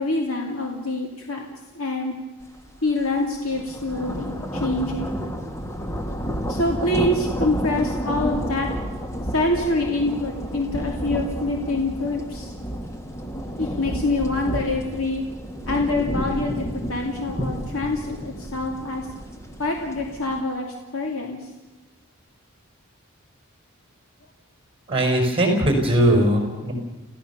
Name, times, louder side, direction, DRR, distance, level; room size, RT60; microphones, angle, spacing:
voice 1, 0.0-1.5 1.7-2.2 2.8-5.2 6.5-8.7 9.3-12.5 13.6-15.2 15.6-19.1 19.6-20.7 20.9-21.5, left 2 dB, 70° left, 1 dB, 2.8 m, -25 dB
sound 1, 2.6-2.8 3.1-20.4, equal, 15° left, 1.6 m, -31 dB
voice 2, 24.9-26.7, right 1 dB, 25° right, 4 dB, 4.9 m, -19 dB
29.5 x 16.0 x 7.0 m, 1.1 s
head